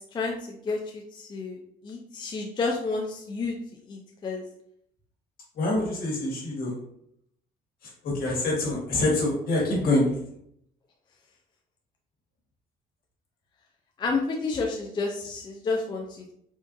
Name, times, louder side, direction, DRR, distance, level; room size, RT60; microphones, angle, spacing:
voice 1, 0.1-3.6 3.9-4.4 14.0-16.2, left 3 dB, 25° left, 1 dB, 0.4 m, -30 dB
voice 2, 5.5-6.7 7.8-10.2, left 2 dB, 60° left, -3 dB, 1.4 m, -26 dB
3.7 x 2.5 x 2.5 m, 0.72 s
cardioid pair, 110°, 17 cm